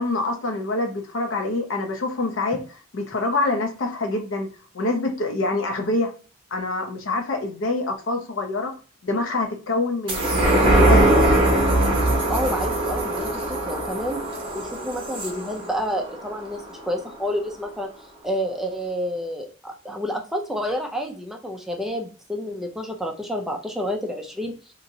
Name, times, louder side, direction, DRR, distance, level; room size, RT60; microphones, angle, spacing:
voice 1, 0.0-2.6 2.9-4.5 4.7-6.1 6.5-8.7 9.0-11.2, left 2 dB, 65° left, 4 dB, 0.7 m, -25 dB
sound 1, 10.1-16.9 17.3-17.4, right 1 dB, 25° right, 0.8 m, -21 dB
voice 2, 12.3-14.2 14.5-17.9 18.2-24.5, equal, ahead, 2 dB, 0.4 m, -29 dB
2.9 x 2.7 x 2.6 m, 0.37 s
head